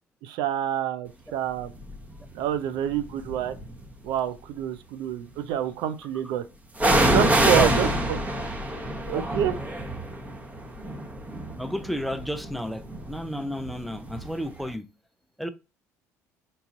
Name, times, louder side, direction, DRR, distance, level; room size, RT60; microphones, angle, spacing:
voice 1, 0.2-1.7 2.3-3.5 4.0-6.4 7.1-8.3 9.1-9.5, right 10 dB, 65° right, 0.4 m, -27 dB
sound 1, 1.8-2.2 2.9-3.9 6.8-14.4 14.7-14.8, right 1 dB, 15° right, 1.0 m, -26 dB
voice 2, 6.9-7.7 9.1-9.2 11.6-14.9 15.4-15.5, equal, ahead, 0.5 m, -31 dB
4.0 x 3.7 x 2.5 m
hypercardioid pair, 60°, 9 cm